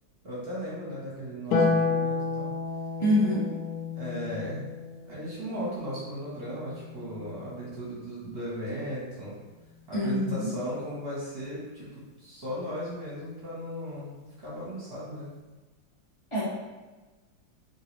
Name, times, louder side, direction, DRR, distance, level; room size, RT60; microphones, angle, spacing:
voice 1, 0.2-2.5 3.9-4.7 5.0-9.4 9.9-15.3, equal, 45° right, -7 dB, 0.8 m, -36 dB
Harp, 1.5-8.0 9.7-10.6, left 4 dB, 70° left, 0.9 m, -32 dB
voice 2, 3.0-3.5 9.9-10.5 16.3-16.4, left 1 dB, 25° left, -8 dB, 0.6 m, -25 dB
3.0 x 2.6 x 3.0 m, 1.2 s
omnidirectional pair, 2.1 m